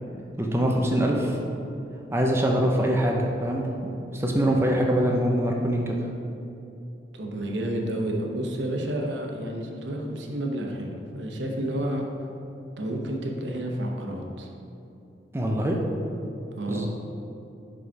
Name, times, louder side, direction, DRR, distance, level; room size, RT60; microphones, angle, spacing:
voice 1, 0.4-1.4 2.1-3.6 4.1-6.0 15.3-15.8 16.7-16.9, equal, 15° right, 0 dB, 0.5 m, -23 dB
voice 2, 7.1-12.1 12.8-14.5 16.6-16.9, right 1 dB, 85° right, 1 dB, 0.9 m, -30 dB
5.1 x 4.9 x 5.8 m, 2.8 s
head